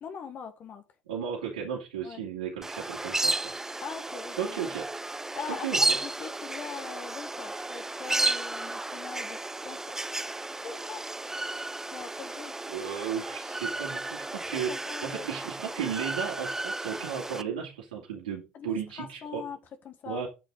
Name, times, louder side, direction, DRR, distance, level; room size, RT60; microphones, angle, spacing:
voice 1, 0.0-0.8 2.0-2.2 3.8-4.7 5.3-9.4 9.6-9.8 10.6-11.0 11.9-12.5 14.5-15.4 18.5-19.6 19.8-20.2, left 6 dB, 50° left, 1.7 m, -41 dB
voice 2, 1.1-3.8 4.4-4.9 5.5-6.0 12.7-14.7 15.0-19.4 20.1-20.3, right 8 dB, 80° right, 2.5 m, -35 dB
sound 1, 2.6-17.4, right 2 dB, 10° right, 0.6 m, -33 dB
9.5 x 6.4 x 3.9 m
hypercardioid pair, 65°, 4 cm